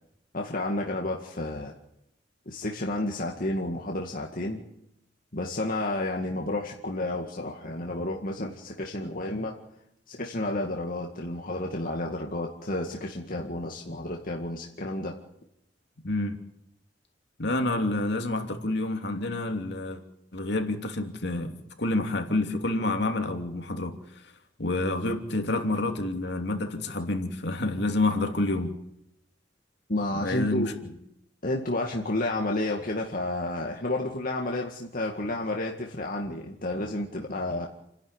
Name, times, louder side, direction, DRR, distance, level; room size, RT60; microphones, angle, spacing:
voice 1, 0.3-1.7 2.5-4.6 5.3-9.5 10.1-15.1 29.9-30.8 31.4-37.7, left 1 dB, 50° left, 1 dB, 2.1 m, -31 dB
voice 2, 16.0-16.4 17.4-20.0 20.3-23.9 24.6-28.7 30.2-30.7, left 2 dB, 65° left, 5 dB, 2.9 m, -28 dB
29.5 x 11.5 x 9.9 m, 0.81 s
head